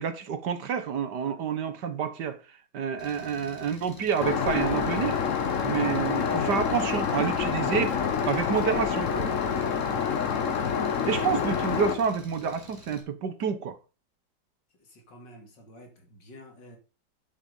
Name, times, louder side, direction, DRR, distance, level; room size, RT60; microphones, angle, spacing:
voice 1, 0.0-2.4 2.7-5.2 5.6-8.0 8.3-9.3 11.1-13.8, right 7 dB, 65° right, 1.7 m, -28 dB
Engine, 3.0-13.0, left 2 dB, 10° left, 2.2 m, -49 dB
Aircraft, 4.2-12.0, left 6 dB, 50° left, 1.3 m, -27 dB
voice 2, 14.8-16.8, equal, 75° left, 3.1 m, -51 dB
8.1 x 7.5 x 5.4 m
omnidirectional pair, 2.0 m